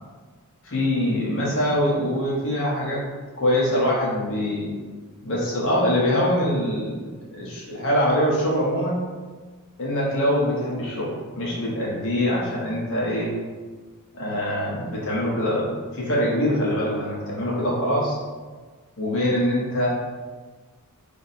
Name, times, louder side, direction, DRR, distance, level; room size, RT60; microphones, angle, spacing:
voice 1, 0.6-3.0 3.4-4.7 5.2-9.0 9.8-13.3 14.1-18.2 19.0-19.9, equal, 60° left, -4 dB, 1.0 m, -24 dB
3.3 x 2.1 x 4.1 m, 1.4 s
head